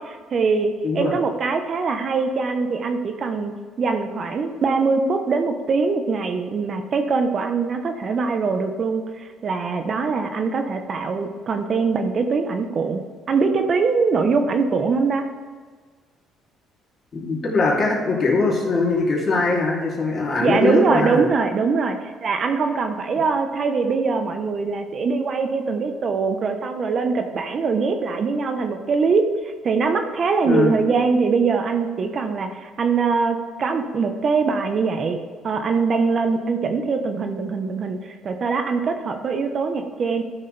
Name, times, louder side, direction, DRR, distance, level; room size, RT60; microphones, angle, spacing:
voice 1, 0.0-13.0 13.3-15.2 20.4-40.2, right 4 dB, 50° right, 6 dB, 1.0 m, -22 dB
voice 2, 17.1-21.2 30.4-30.7, left 3 dB, 45° left, -3 dB, 2.9 m, -21 dB
13.0 x 6.5 x 3.3 m, 1.5 s
supercardioid pair, 70°, 0 cm